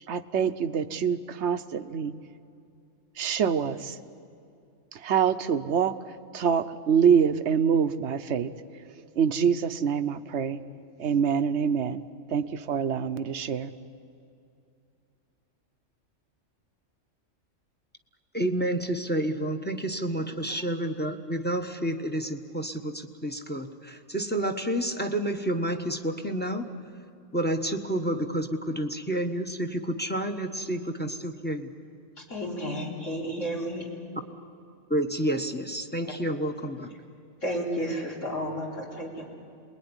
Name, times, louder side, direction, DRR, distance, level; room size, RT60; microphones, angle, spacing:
voice 1, 0.1-2.1 3.2-4.0 4.9-5.9 6.3-8.5 9.2-10.6 11.0-12.0 12.3-13.7, right 7 dB, 65° right, 10 dB, 1.2 m, -25 dB
voice 2, 18.3-26.7 27.3-31.7 34.9-36.9, right 1 dB, 10° left, 6 dB, 1.3 m, -29 dB
voice 3, 32.3-34.0 36.1-36.2 37.4-39.2, equal, 80° left, -3 dB, 4.7 m, -32 dB
27.5 x 21.5 x 9.9 m, 2.5 s
omnidirectional pair, 1.3 m